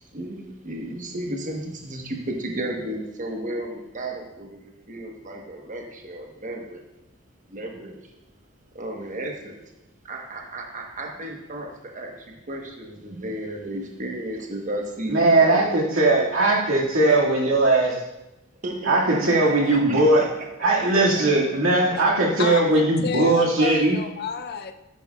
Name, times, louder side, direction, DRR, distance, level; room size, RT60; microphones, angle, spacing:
voice 1, 0.1-6.8 7.5-7.9 8.7-9.6 10.0-12.1 12.5-15.8 16.1-16.3 18.6-20.3, right 1 dB, 40° right, 1 dB, 1.1 m, -33 dB
voice 2, 15.1-17.9 18.8-20.2 20.6-24.0, right 2 dB, 75° right, -3 dB, 2.1 m, -19 dB
voice 3, 22.4-24.7, left 5 dB, 50° left, 9 dB, 0.5 m, -30 dB
9.5 x 9.1 x 2.4 m, 0.93 s
head